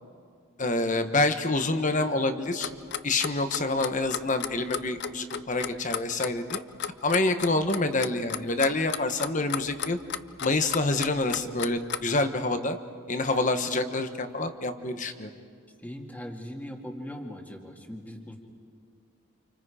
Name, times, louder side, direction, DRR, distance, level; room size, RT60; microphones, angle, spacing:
voice 1, 0.6-2.7 3.0-6.6 7.0-10.0 10.4-12.8 13.1-15.3, left 2 dB, 35° left, 8 dB, 1.3 m, -27 dB
Clock, 2.6-12.2, left 9 dB, 50° left, 0.6 m, -33 dB
voice 2, 15.8-18.4, equal, 10° left, 2 dB, 2.1 m, -40 dB
29.5 x 28.5 x 5.1 m, 2.3 s
head